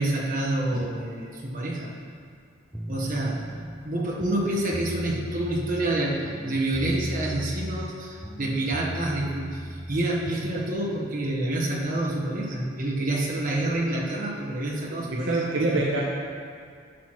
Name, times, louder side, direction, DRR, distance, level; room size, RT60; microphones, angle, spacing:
voice 1, 0.0-1.9 2.9-3.4 3.8-15.4 15.7-15.8, right 1 dB, 45° right, -4 dB, 1.2 m, -28 dB
sound 1, 2.7-3.8 4.1-5.9 6.2-8.0 8.2-10.6, equal, 5° right, 0.4 m, -36 dB
voice 2, 14.9-16.0, right 2 dB, 65° right, -4 dB, 0.8 m, -25 dB
11.0 x 5.9 x 3.1 m, 2.1 s
head